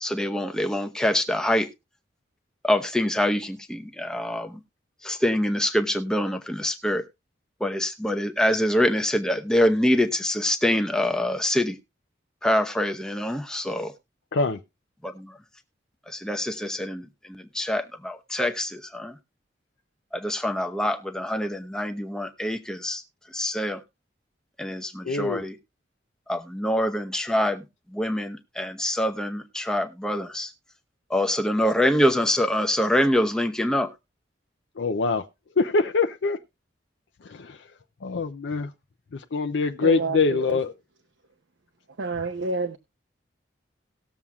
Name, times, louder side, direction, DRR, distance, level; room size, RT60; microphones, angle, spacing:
voice 1, 0.0-1.7 2.6-4.5 5.0-7.0 7.6-11.7 12.4-13.9 15.0-15.3 16.1-17.0 17.5-19.1 20.1-23.0 23.3-23.8 24.6-25.6 26.3-27.6 27.9-30.5 31.1-33.9, left 1 dB, 5° left, 0.7 m, -25 dB
voice 2, 25.0-25.4 34.8-35.3 35.6-36.4 37.2-37.6 38.0-38.7 39.1-40.7, left 4 dB, 75° left, 0.5 m, -24 dB
voice 3, 39.8-40.6 42.0-42.8, right 3 dB, 80° right, 0.8 m, -29 dB
19.0 x 7.1 x 2.3 m
head